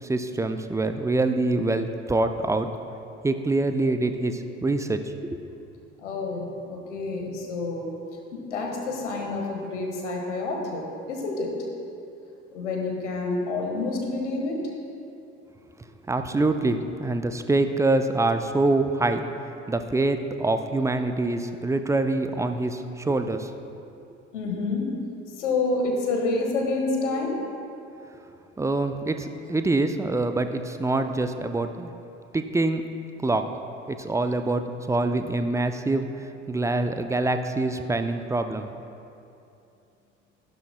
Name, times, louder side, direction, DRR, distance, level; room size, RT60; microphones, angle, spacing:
voice 1, 0.0-2.7 3.2-5.4 16.1-19.2 19.7-23.5 28.6-31.9 32.3-32.9 33.2-33.5 33.9-36.1 36.5-38.7, right 2 dB, 10° right, 8 dB, 0.5 m, -25 dB
voice 2, 6.0-7.9 8.3-11.5 12.5-14.7 24.3-24.9 25.4-27.4, left 3 dB, 70° left, 1 dB, 1.4 m, -28 dB
15.0 x 12.0 x 2.2 m, 2.6 s
figure-of-eight pair, 60°, 37 cm